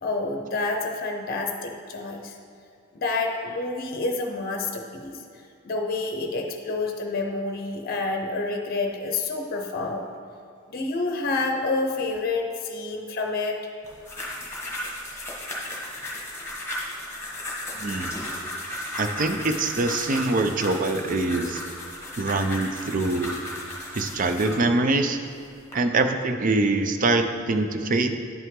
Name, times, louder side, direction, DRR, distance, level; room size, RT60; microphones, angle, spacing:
voice 1, 0.0-2.3 2.9-5.2 5.6-10.1 10.7-13.7, left 3 dB, 45° left, 3 dB, 0.7 m, -28 dB
sound 1, 13.8-24.6 25.3-25.7, left 1 dB, 10° left, 1.3 m, -35 dB
voice 2, 17.8-18.2 19.0-21.6 22.2-23.4 23.9-25.2 25.7-28.2, right 2 dB, 40° right, 7 dB, 0.4 m, -24 dB
10.5 x 5.6 x 3.7 m, 2.3 s
head